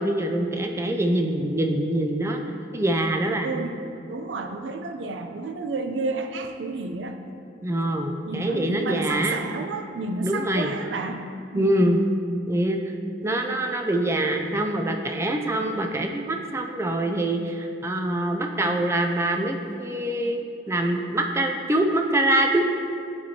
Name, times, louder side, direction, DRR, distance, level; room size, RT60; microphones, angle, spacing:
voice 1, 0.0-3.5 7.6-9.5 10.2-10.7 11.5-12.0 12.5-12.8 13.2-22.7, right 1 dB, 15° right, 3 dB, 0.4 m, -24 dB
voice 2, 3.4-3.8 4.1-7.2 8.2-11.9, right 3 dB, 80° right, 6 dB, 0.5 m, -31 dB
11.5 x 4.4 x 2.8 m, 2.5 s
head